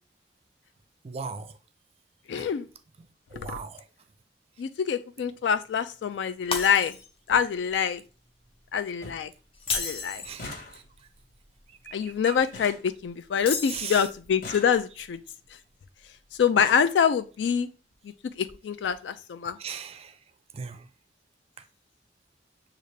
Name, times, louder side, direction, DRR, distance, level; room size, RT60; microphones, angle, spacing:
voice 1, 1.0-1.5 2.4-2.5 3.3-3.8 10.2-10.6 11.9-12.4 13.7-14.0 19.6-20.1 20.5-20.9, right 6 dB, 35° right, 0.4 m, -38 dB
voice 2, 2.3-2.7 3.5-3.6 4.6-7.0 7.3-8.0 8.7-9.3 9.7-10.2 11.9-15.2 16.4-17.7 18.4-19.6, left 7 dB, 75° left, 0.3 m, -25 dB
sound 1, 5.2-5.4 6.6-6.7 6.9-7.0 7.3-7.5 7.9-8.4 8.7-8.8 9.0-9.4 9.7-13.7 14.2-15.2 16.0-16.1 16.4-17.0 17.9-18.0 18.4-18.5 18.8-18.9, left 2 dB, 55° left, 1.2 m, -45 dB
Shatter, 6.5-7.3 7.7-7.9 9.5-10.4 13.4-14.3, left 4 dB, 30° left, 0.7 m, -32 dB
6.6 x 2.4 x 3.2 m
head